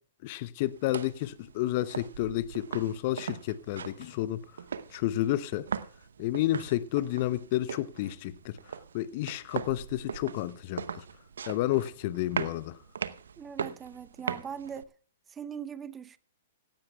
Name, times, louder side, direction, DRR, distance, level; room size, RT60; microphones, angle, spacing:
voice 1, 0.2-4.4 4.9-5.6 6.2-8.6 8.9-11.0 11.5-12.8, left 14 dB, 45° left, 0.7 m, -30 dB
sound 1, 0.6-14.8, right 7 dB, 70° right, 0.8 m, -40 dB
voice 2, 13.4-14.9 15.3-16.2, right 7 dB, 15° right, 0.7 m, -40 dB
17.5 x 15.5 x 2.3 m
figure-of-eight pair, 115°, 0 cm